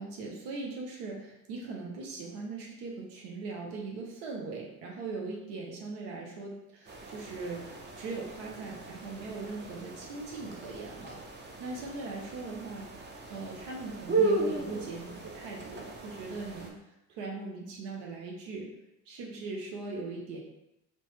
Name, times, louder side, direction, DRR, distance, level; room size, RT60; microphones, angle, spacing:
voice 1, 0.0-16.8 17.1-18.7 19.1-20.4, right 3 dB, 80° right, -1 dB, 0.7 m, -40 dB
sound 1, 6.9-16.7, right 3 dB, 25° right, 0.5 m, -36 dB
2.8 x 2.1 x 3.1 m, 0.86 s
hypercardioid pair, 50°, 42 cm